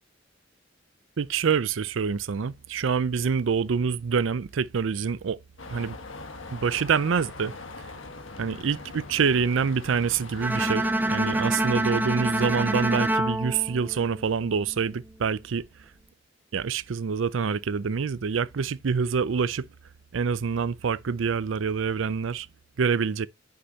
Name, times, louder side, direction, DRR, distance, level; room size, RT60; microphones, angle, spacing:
voice 1, 1.2-5.4 5.7-6.0 6.5-7.5 8.4-15.7 16.5-19.7 20.1-22.5 22.8-23.3, right 6 dB, 80° right, 0.5 m, -26 dB
sound 1, 5.6-10.7, left 3 dB, 85° left, 1.5 m, -42 dB
Bowed string instrument, 10.4-14.6, right 1 dB, 10° right, 0.5 m, -26 dB
9.6 x 6.6 x 2.8 m
head